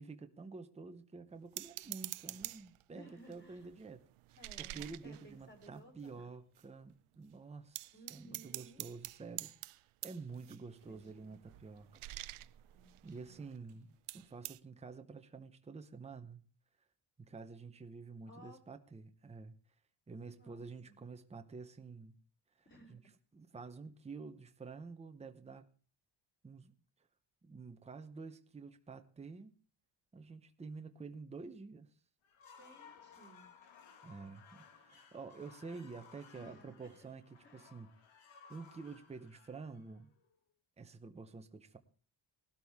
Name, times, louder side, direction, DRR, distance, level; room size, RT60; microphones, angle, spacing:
voice 1, 0.0-4.0 4.3-9.5 10.0-12.0 13.0-16.4 17.2-19.6 20.1-22.2 22.9-23.0 23.3-25.6 26.4-26.7 27.4-29.5 30.1-31.9 34.0-37.9 38.5-40.1 40.8-41.8, right 4 dB, 15° right, 0.8 m, -49 dB
sound 1, 1.6-2.8 3.2-6.1 6.5-6.6 6.9-7.2 7.7-13.7 14.1-14.6, right 16 dB, 80° right, 0.6 m, -48 dB
voice 2, 2.9-3.7 4.4-6.3 7.9-8.9 10.8-11.5 12.7-13.4 13.7-13.8 18.3-18.6 20.4-21.0 22.7-23.0 31.4-31.6 32.6-33.4 36.4-37.1 37.4-37.7, right 1 dB, 20° left, 3.5 m, -59 dB
sound 2, 32.2-40.3, left 6 dB, 70° left, 1.8 m, -60 dB
18.5 x 12.5 x 3.5 m
wide cardioid pair, 165°, 49 cm